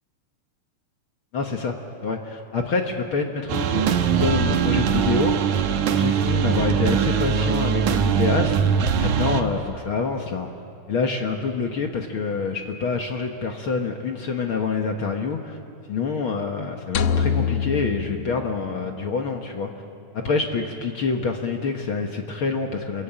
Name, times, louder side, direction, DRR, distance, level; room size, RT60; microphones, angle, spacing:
voice 1, 1.3-1.8 2.0-5.4 6.0-8.6 9.0-10.5 10.9-15.6 15.9-19.7 20.1-23.0, left 4 dB, 50° left, 3 dB, 1.8 m, -26 dB
sound 1, 3.5-9.4, right 7 dB, 75° right, 2.6 m, -21 dB
sound 2, 16.9-19.2, left 6 dB, 70° left, 1.4 m, -25 dB
27.5 x 22.5 x 9.0 m, 2.5 s
omnidirectional pair, 3.6 m